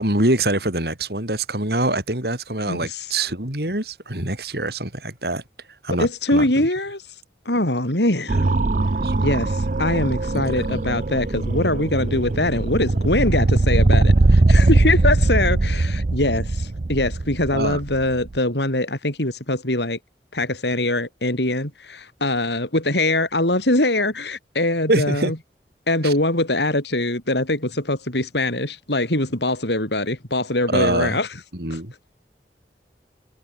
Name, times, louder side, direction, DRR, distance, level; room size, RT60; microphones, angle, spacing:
voice 1, 0.0-5.4 5.8-6.7 9.0-9.3 10.3-10.8 17.5-17.8 24.9-25.3 26.0-26.1 30.7-31.2 31.5-31.9, right 2 dB, 65° right, 5.4 m, -24 dB
voice 2, 2.7-3.1 5.9-7.0 7.5-8.5 9.2-14.1 14.5-20.0 20.3-25.4 25.9-31.3 31.7-31.8, left 1 dB, 80° left, 6.0 m, -23 dB
sound 1, 8.3-18.4, right 2 dB, 45° right, 0.6 m, -20 dB
head